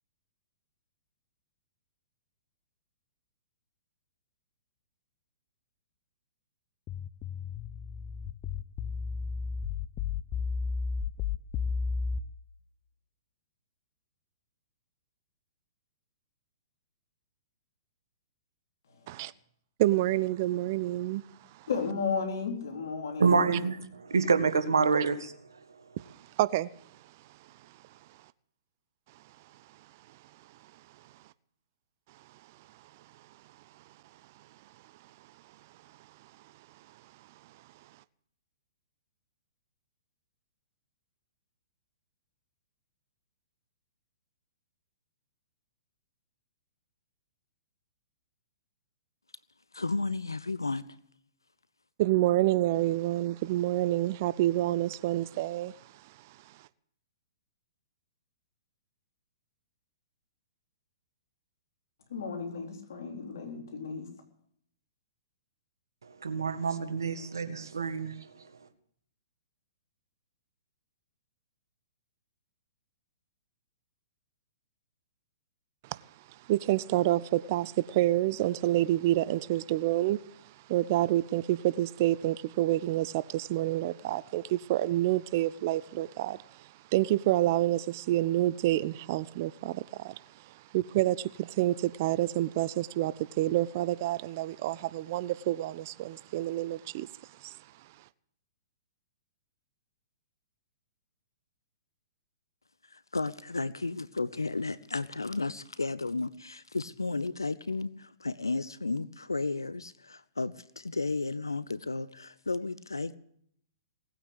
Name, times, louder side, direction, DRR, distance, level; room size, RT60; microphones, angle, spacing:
sound 1, 6.9-12.2, left 5 dB, 25° left, 0.8 m, -33 dB
voice 1, 19.8-21.2 26.4-26.7 52.0-55.7 76.5-80.2 80.7-90.2 90.5-97.1 97.4-97.6, right 15 dB, 40° right, 0.6 m, -28 dB
voice 2, 21.7-23.5 62.1-64.1, left 5 dB, 60° left, 3.7 m, -34 dB
voice 3, 23.2-25.3 66.2-68.1, right 5 dB, 70° right, 1.7 m, -27 dB
voice 4, 49.7-50.8 102.9-113.2, left 3 dB, 80° left, 0.7 m, -33 dB
19.0 x 9.0 x 8.0 m
figure-of-eight pair, 115°, 2 cm